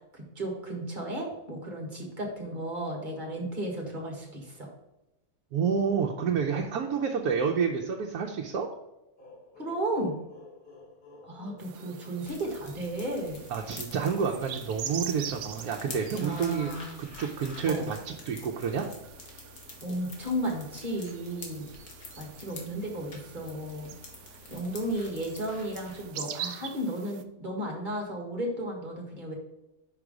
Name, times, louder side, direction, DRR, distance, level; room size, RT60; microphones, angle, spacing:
voice 1, 0.1-4.7 9.6-10.1 11.2-13.4 16.1-17.0 17.6-17.9 19.8-21.7 22.2-23.9 24.5-29.3, right 1 dB, 35° right, 0 dB, 1.8 m, -34 dB
voice 2, 5.5-8.7 13.5-16.7 17.0-18.9, right 6 dB, 90° right, 1 dB, 1.2 m, -29 dB
sound 1, 9.2-12.9, left 3 dB, 35° left, 1.8 m, -52 dB
sound 2, 11.6-27.2, right 9 dB, 65° right, 0.8 m, -44 dB
sound 3, 12.2-26.0, left 4 dB, 75° left, 1.9 m, -47 dB
5.7 x 4.8 x 5.0 m, 0.95 s
omnidirectional pair, 1.6 m